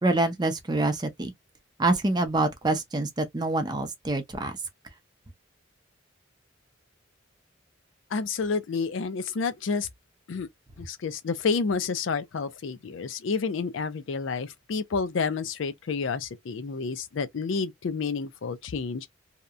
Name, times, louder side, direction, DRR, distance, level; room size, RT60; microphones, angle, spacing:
voice 1, 0.0-1.3 1.8-4.5, right 2 dB, 20° right, 0.6 m, -26 dB
voice 2, 8.1-9.9 10.3-10.5 10.8-19.1, left 5 dB, 75° left, 0.4 m, -29 dB
2.8 x 2.1 x 2.4 m
head